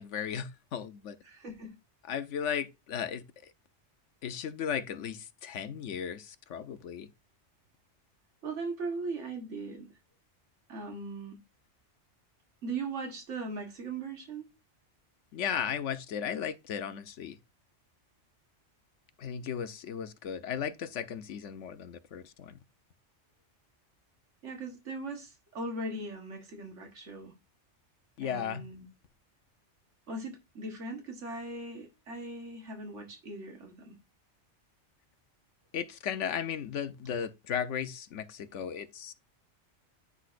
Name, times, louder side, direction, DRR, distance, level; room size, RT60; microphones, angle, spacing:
voice 1, 0.0-1.2 2.1-3.5 4.2-7.1 15.3-17.4 19.2-22.6 28.2-28.6 35.7-39.1, left 8 dB, 85° left, 1.1 m, -36 dB
voice 2, 1.2-1.7 8.4-9.9 10.7-11.4 12.6-14.5 24.4-27.3 28.2-28.9 30.1-34.0, right 3 dB, 90° right, 1.7 m, -39 dB
9.7 x 6.1 x 2.5 m
omnidirectional pair, 1.2 m